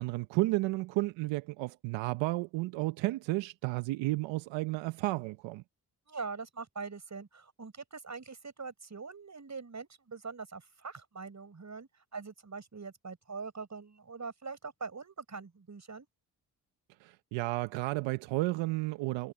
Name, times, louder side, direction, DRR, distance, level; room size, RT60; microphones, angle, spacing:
voice 1, 0.0-5.6 17.0-19.3, right 20 dB, 85° right, 1.0 m, -32 dB
voice 2, 6.1-16.1, right 4 dB, 40° right, 6.5 m, -43 dB
hypercardioid pair, 45°, 44 cm